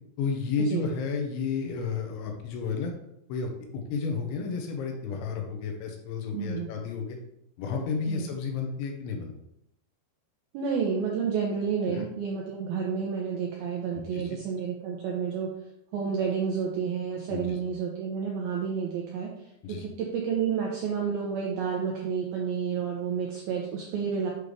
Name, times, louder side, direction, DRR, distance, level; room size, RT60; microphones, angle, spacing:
voice 1, 0.2-2.9 3.3-3.5 3.9-7.2 7.6-9.3 11.9-12.0 13.9-14.4 17.3-17.6 19.6-19.9, left 5 dB, 80° left, 2 dB, 3.3 m, -32 dB
voice 2, 6.3-6.7 8.1-8.3 10.5-15.5 15.9-19.3 19.8-24.3, right 6 dB, 85° right, -1 dB, 2.2 m, -30 dB
8.2 x 3.2 x 5.1 m, 0.80 s
omnidirectional pair, 5.4 m